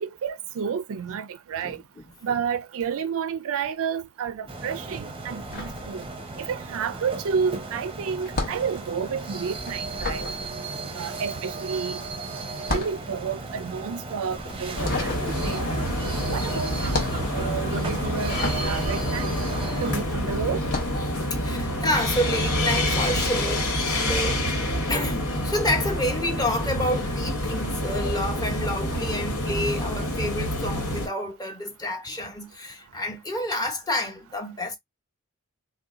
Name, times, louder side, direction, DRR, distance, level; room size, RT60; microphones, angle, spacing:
voice 1, 0.0-1.8 2.2-6.1 6.4-10.3 10.9-12.0 12.7-15.7 16.3-16.9 17.3-19.3 19.8-20.6, right 6 dB, 65° right, 0.4 m, -30 dB
voice 2, 1.6-2.1 10.1-10.2 10.7-10.8 21.1-24.6 24.9-34.8, left 1 dB, 15° left, 0.9 m, -29 dB
sound 1, 4.5-20.0, right 3 dB, 25° right, 0.6 m, -36 dB
sound 2, 5.3-6.5 6.8-20.0 20.5-21.1, left 3 dB, 45° left, 1.0 m, -34 dB
sound 3, 14.8-31.1, left 1 dB, 75° left, 1.3 m, -27 dB
2.8 x 2.1 x 3.7 m
head